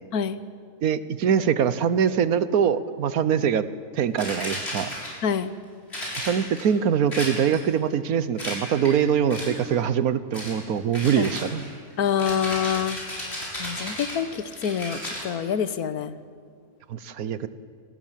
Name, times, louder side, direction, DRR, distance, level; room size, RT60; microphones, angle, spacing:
voice 1, 0.8-3.6 3.9-4.9 6.3-11.6 16.9-17.5, right 8 dB, 80° right, 14 dB, 1.4 m, -23 dB
sound 1, 4.2-5.3 5.9-6.7 7.1-7.7 8.4-9.0 9.3-9.7 10.3-10.6 10.9-15.3, left 1 dB, 45° left, 7.0 m, -34 dB
voice 2, 5.2-5.5 11.1-11.3 12.0-13.0 13.6-16.1, left 8 dB, 90° left, 13 dB, 1.5 m, -26 dB
26.5 x 19.5 x 7.5 m, 2.1 s
omnidirectional pair, 1.5 m